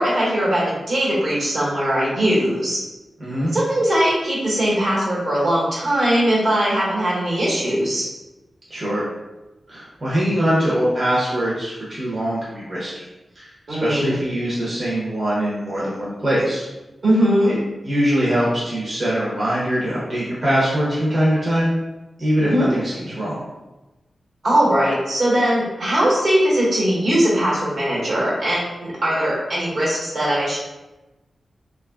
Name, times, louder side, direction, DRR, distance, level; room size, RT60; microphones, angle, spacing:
voice 1, 0.0-2.8 3.5-8.1 13.7-14.2 17.0-17.5 22.4-22.7 24.4-30.6, equal, 70° right, -6 dB, 1.2 m, -20 dB
voice 2, 3.2-3.5 8.7-9.1 9.7-13.0 13.4-16.7 17.8-21.7 22.2-23.5, equal, 40° right, -8 dB, 0.7 m, -22 dB
2.9 x 2.3 x 2.3 m, 1.1 s
cardioid pair, 70°, 0 cm